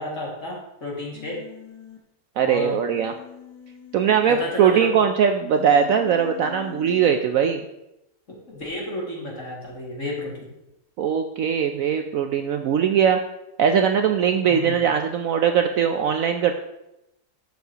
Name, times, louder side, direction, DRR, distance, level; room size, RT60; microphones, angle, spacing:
voice 1, 0.0-1.4 2.4-2.8 4.3-4.9 8.3-10.5 14.5-14.8, left 1 dB, 40° left, -3 dB, 2.5 m, -32 dB
Human voice, 1.1-2.0 3.0-4.8 5.6-7.2, left 9 dB, 60° left, 1.6 m, -42 dB
voice 2, 2.4-3.1 3.9-7.6 11.0-13.2 13.6-16.5, right 7 dB, 85° right, 5 dB, 0.7 m, -20 dB
11.5 x 7.2 x 2.9 m, 0.89 s
omnidirectional pair, 2.0 m